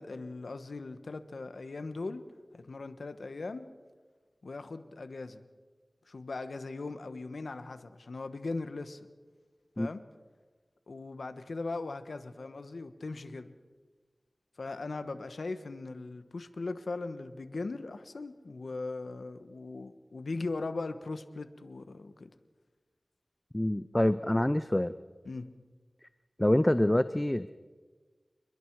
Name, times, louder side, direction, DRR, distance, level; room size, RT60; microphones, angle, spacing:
voice 1, 0.0-2.2 2.5-3.7 4.4-5.4 6.1-9.0 9.8-10.0 10.9-13.5 14.6-22.3 25.2-25.5, left 3 dB, 80° left, 10 dB, 1.3 m, -39 dB
voice 2, 23.5-24.9 26.4-27.5, left 1 dB, 20° left, 13 dB, 0.6 m, -26 dB
29.0 x 21.5 x 4.8 m, 1.4 s
wide cardioid pair, 70°, 0 cm